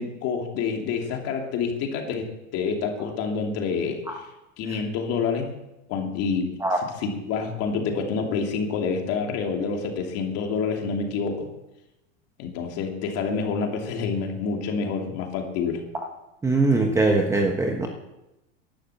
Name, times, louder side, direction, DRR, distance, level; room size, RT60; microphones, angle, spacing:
voice 1, 0.0-2.3 2.5-4.3 4.6-5.5 5.9-6.5 6.8-11.5 12.4-15.8, left 5 dB, 40° left, 2 dB, 2.8 m, -27 dB
voice 2, 16.4-17.9, right 2 dB, 10° right, 3 dB, 1.1 m, -21 dB
11.5 x 10.0 x 7.9 m, 0.95 s
supercardioid pair, 150°, 37 cm